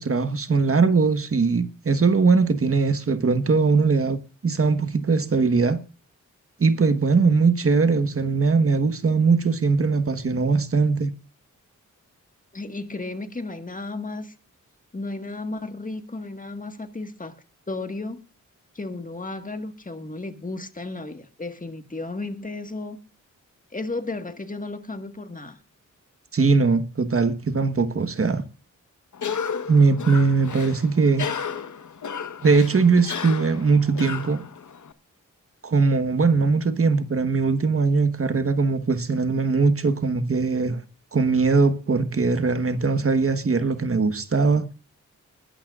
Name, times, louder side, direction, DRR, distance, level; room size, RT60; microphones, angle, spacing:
voice 1, 0.0-5.8 6.6-11.1 26.3-28.4 29.7-31.3 32.4-34.4 35.6-40.8 41.1-44.7, right 4 dB, 45° right, 1.3 m, -20 dB
voice 2, 12.5-14.3 14.9-17.3 17.7-18.2 18.8-23.0 23.7-25.6, left 2 dB, 25° left, 1.7 m, -33 dB
Cough, 29.1-34.9, left 6 dB, 70° left, 1.3 m, -33 dB
21.0 x 12.5 x 2.5 m
wide cardioid pair, 105°, 31 cm